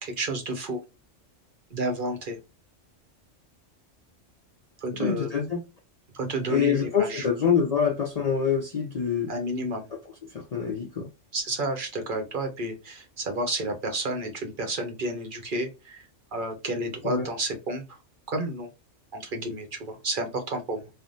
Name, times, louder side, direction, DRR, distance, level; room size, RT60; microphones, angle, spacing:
voice 1, 0.0-0.8 1.7-2.4 4.8-5.3 6.1-7.3 9.3-9.9 11.3-16.0 16.3-18.0 18.3-18.7 19.1-20.9, right 2 dB, 50° right, 0.7 m, -31 dB
voice 2, 5.0-5.6 6.5-9.3 10.3-11.1 17.0-17.3, left 7 dB, 55° left, 0.4 m, -25 dB
3.3 x 2.1 x 2.5 m
omnidirectional pair, 1.3 m